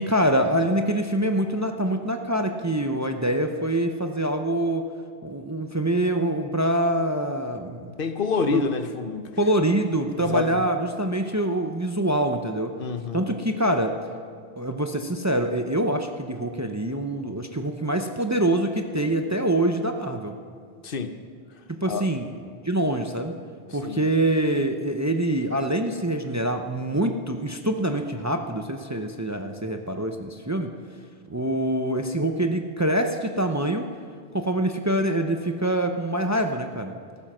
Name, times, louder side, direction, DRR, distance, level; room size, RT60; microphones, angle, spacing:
voice 1, 0.0-4.9 5.2-7.9 8.5-8.6 9.4-12.7 13.1-14.0 14.6-20.3 21.7-22.3 22.6-23.4 23.7-30.7 31.3-33.9 34.3-36.9, right 1 dB, 20° right, 5 dB, 0.6 m, -25 dB
voice 2, 8.0-9.3 10.2-10.6 12.8-13.3 20.8-21.2 21.9-22.1 23.7-24.0, left 4 dB, 60° left, 9 dB, 1.0 m, -27 dB
14.0 x 13.0 x 6.1 m, 2.2 s
omnidirectional pair, 1.0 m